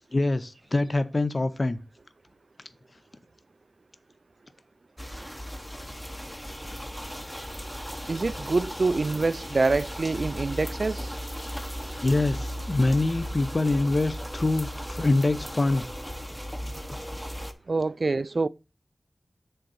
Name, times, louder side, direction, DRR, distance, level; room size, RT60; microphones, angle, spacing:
voice 1, 0.1-1.8 12.0-12.4 12.7-15.8, left 2 dB, 35° left, 0.7 m, -24 dB
sound 1, 5.0-17.5, equal, 5° left, 0.8 m, -36 dB
voice 2, 8.1-11.1 17.7-18.5, right 3 dB, 55° right, 0.4 m, -26 dB
6.8 x 3.9 x 6.2 m
wide cardioid pair, 90°, 0 cm